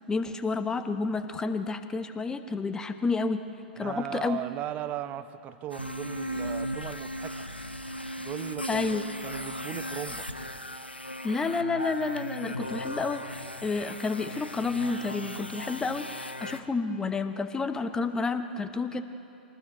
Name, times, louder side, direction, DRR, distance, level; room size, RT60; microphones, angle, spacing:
voice 1, 0.1-3.4 3.8-4.4 8.7-9.1 11.2-19.0, left 4 dB, 10° left, 10 dB, 1.1 m, -30 dB
voice 2, 3.7-7.5 8.2-10.3, right 12 dB, 30° right, 13 dB, 0.9 m, -37 dB
sound 1, 5.7-16.6, equal, 85° left, 1.0 m, -37 dB
26.0 x 19.0 x 8.0 m, 2.7 s
figure-of-eight pair, 100°, 6 cm